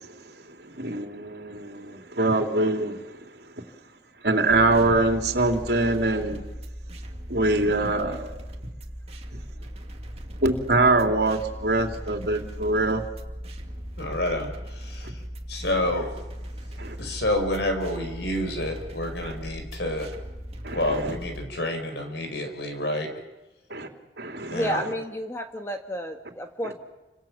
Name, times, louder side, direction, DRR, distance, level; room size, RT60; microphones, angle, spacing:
voice 1, 0.6-3.3 4.2-6.4 7.3-8.4 10.4-13.0 16.8-17.0 19.2-19.3 20.6-21.1 23.7-23.9 24.2-24.6, right 2 dB, 60° right, 4 dB, 3.5 m, -24 dB
sound 1, 4.5-21.4, equal, 35° right, 2.5 m, -38 dB
voice 2, 14.0-15.2 15.5-16.1 17.0-20.1 20.7-23.1 24.5-24.8, left 1 dB, 70° left, 6 dB, 4.9 m, -28 dB
voice 3, 24.5-26.7, equal, 15° left, 5 dB, 1.6 m, -31 dB
29.5 x 26.5 x 7.4 m, 1.0 s
head